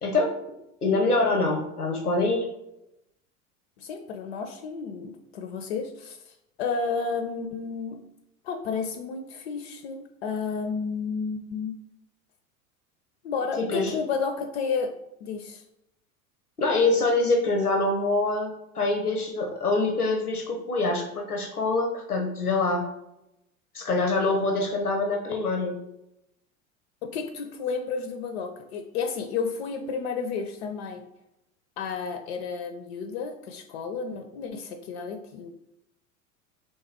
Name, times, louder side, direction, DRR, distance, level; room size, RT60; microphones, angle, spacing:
voice 1, 0.8-2.5 13.6-14.0 16.6-22.9 23.7-25.8, left 3 dB, 90° left, 2 dB, 0.7 m, -25 dB
voice 2, 3.8-6.3 6.6-8.0 8.4-11.7 13.2-14.9 15.2-15.6 27.0-31.0 31.8-35.5, left 5 dB, 45° left, 6 dB, 0.5 m, -31 dB
4.1 x 3.1 x 3.5 m, 0.86 s
figure-of-eight pair, 80°, 44 cm